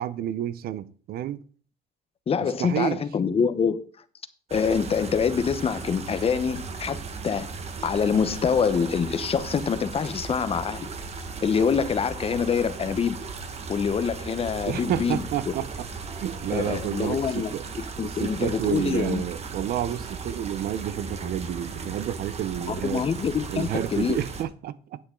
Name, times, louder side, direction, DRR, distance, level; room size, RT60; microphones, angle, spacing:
voice 1, 0.0-1.4 2.6-3.0 14.7-15.7 16.2-17.6 18.0-23.1 23.5-25.0, right 11 dB, 65° right, 0.7 m, -30 dB
voice 2, 2.3-3.8 4.5-7.5 7.8-10.9 11.4-13.2 13.7-15.5 16.5-17.5 18.0-19.2 22.7-24.2, left 6 dB, 35° left, 0.9 m, -25 dB
sound 1, 4.5-24.4, right 4 dB, 40° right, 1.4 m, -36 dB
9.9 x 8.6 x 3.8 m
cardioid pair, 110°, 17 cm